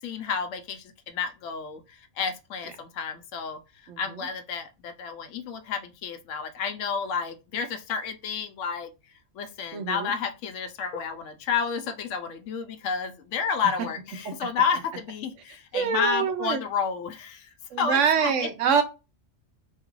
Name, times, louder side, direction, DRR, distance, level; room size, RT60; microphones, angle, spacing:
voice 1, 0.0-8.9 9.3-18.5, left 6 dB, 80° left, 1.0 m, -31 dB
voice 2, 9.7-10.1 15.7-16.6 17.7-18.8, right 7 dB, 75° right, 1.0 m, -24 dB
3.0 x 2.4 x 3.0 m
omnidirectional pair, 1.3 m